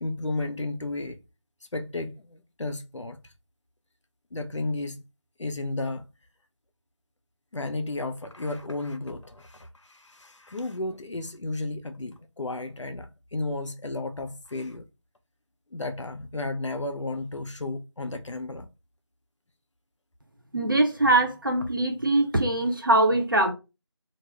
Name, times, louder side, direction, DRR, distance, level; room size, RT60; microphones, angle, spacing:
voice 1, 0.0-1.2 1.7-3.2 4.3-5.0 5.4-6.1 7.5-14.9 15.7-18.7, left 2 dB, 75° left, 0.5 m, -33 dB
voice 2, 20.5-23.5, right 2 dB, 45° right, 0.6 m, -22 dB
2.3 x 2.0 x 3.4 m
figure-of-eight pair, 175°, 15 cm